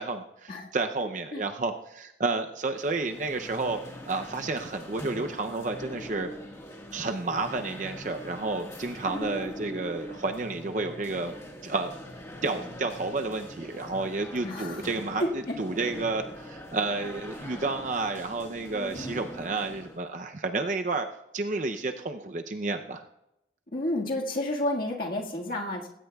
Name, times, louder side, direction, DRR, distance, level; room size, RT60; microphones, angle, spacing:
voice 1, 0.0-3.8 4.0-6.3 6.9-11.4 11.6-11.9 12.4-21.1 21.3-23.0, right 3 dB, 45° right, 6 dB, 0.6 m, -31 dB
sound 1, 2.7-20.0, left 1 dB, 15° left, 1.6 m, -42 dB
voice 2, 14.4-14.8 15.2-15.5 23.7-25.9, left 1 dB, 55° left, -2 dB, 1.8 m, -30 dB
20.0 x 17.0 x 2.3 m, 0.87 s
head